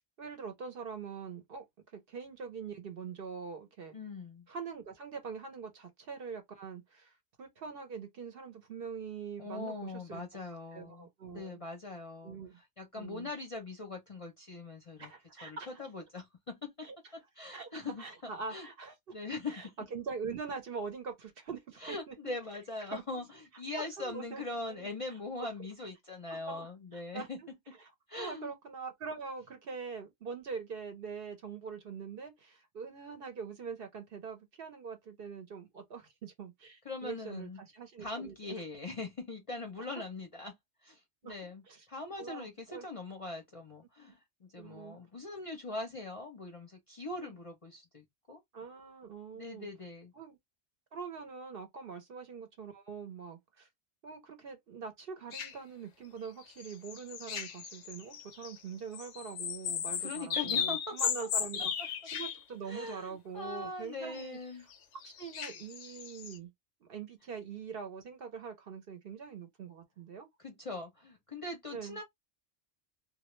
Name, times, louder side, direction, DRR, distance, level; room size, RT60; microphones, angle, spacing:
voice 1, 0.0-1.6 1.9-4.0 4.5-10.2 10.7-11.6 12.2-12.6 12.9-13.3 15.0-15.8 16.8-17.0 17.5-19.1 19.5-22.1 22.9-23.0 23.8-24.4 24.7-24.9 25.4-25.5 26.3-27.5 28.2-38.6 41.2-41.3 41.7-41.9 42.2-42.9 44.6-45.0 47.2-47.3 48.5-49.7 50.1-50.4 50.9-53.7 54.0-64.7 65.0-66.5 66.8-70.3 71.7-72.0, right 5 dB, 60° right, 0.8 m, -43 dB
voice 2, 3.9-4.5 9.4-12.4 12.8-15.1 15.4-16.9 17.1-18.0 18.5-18.7 19.1-19.7 21.8-27.4 28.1-28.5 36.8-37.6 38.0-40.5 40.8-41.6 41.9-48.4 49.3-50.1 60.0-61.0 62.7-64.7 70.4-72.0, left 3 dB, 40° left, 0.6 m, -41 dB
sound 1, 55.3-55.5 56.4-58.6 58.9-62.4 64.1-64.2 64.7-64.8 65.0-66.4, left 8 dB, 85° left, 0.9 m, -36 dB
2.3 x 2.1 x 3.0 m
omnidirectional pair, 1.2 m